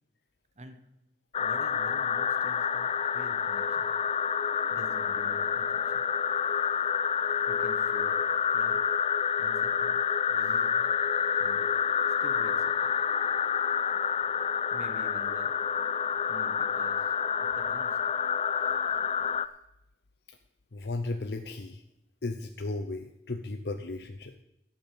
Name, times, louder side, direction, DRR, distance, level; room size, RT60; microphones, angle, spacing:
sound 1, 1.3-19.5, left 7 dB, 35° left, 0.4 m, -28 dB
voice 1, 1.4-3.9 4.7-6.0 7.5-8.2 8.5-8.9 9.4-10.9 11.4-11.7 12.2-12.9 14.7-15.5 16.3-18.0, right 1 dB, 40° right, 8 dB, 1.3 m, -48 dB
voice 2, 20.7-21.8 22.2-24.4, left 2 dB, 70° left, 8 dB, 0.7 m, -35 dB
10.5 x 8.6 x 7.6 m, 0.86 s
head